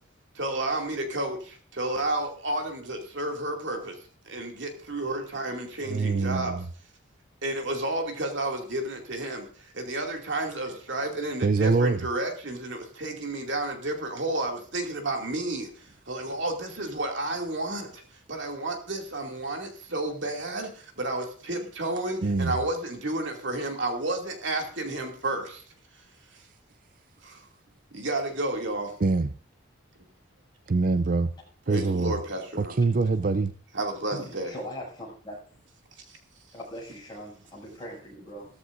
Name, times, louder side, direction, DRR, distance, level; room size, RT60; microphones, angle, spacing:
voice 1, 0.3-4.0 4.3-6.6 7.4-18.0 18.3-25.6 27.2-27.4 27.9-28.9 31.7-32.8 33.7-34.5 36.1-36.2, right 2 dB, 65° right, 2.6 m, -31 dB
voice 2, 5.8-6.7 11.4-12.0 22.2-22.6 29.0-29.3 30.7-31.3 31.7-32.2 32.6-33.5, right 3 dB, 45° right, 0.5 m, -24 dB
voice 3, 34.1-35.4 36.5-38.5, equal, 20° left, 7.0 m, -40 dB
16.5 x 14.0 x 2.6 m
head